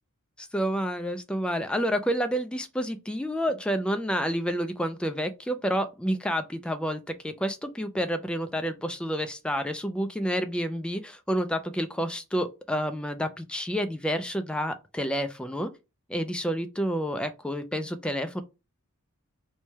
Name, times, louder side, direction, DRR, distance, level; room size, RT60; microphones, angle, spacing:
voice 1, 0.4-15.7 16.1-18.4, equal, 5° left, 0.3 m, -29 dB
3.2 x 2.2 x 4.1 m
head